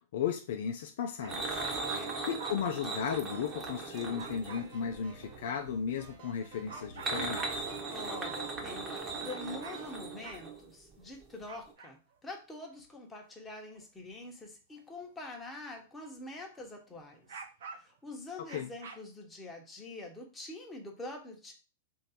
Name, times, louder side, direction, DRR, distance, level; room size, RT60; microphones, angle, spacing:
voice 1, 0.1-1.6 2.3-7.5 18.5-18.7, left 7 dB, 65° left, 5 dB, 0.5 m, -35 dB
sound 1, 1.2-2.5 3.6-4.6 5.7-5.8 6.2-6.3 6.7-7.7 8.3-9.0 9.3-11.0 11.5-12.1 12.6-12.8 13.7-14.3 14.7-14.8 17.1-18.0 18.4-19.0, right 5 dB, 70° right, 0.8 m, -47 dB
sound 2, 1.3-5.5 6.7-11.0 11.2-11.3 11.7-11.8, right 3 dB, 20° right, 1.2 m, -38 dB
voice 2, 1.8-2.1 7.9-17.4 17.8-21.5, left 2 dB, 10° left, 0 dB, 1.1 m, -45 dB
sound 3, 3.1-10.0, right 5 dB, 55° right, 1.2 m, -53 dB
3.2 x 2.7 x 4.2 m, 0.33 s
hypercardioid pair, 105°, 0 cm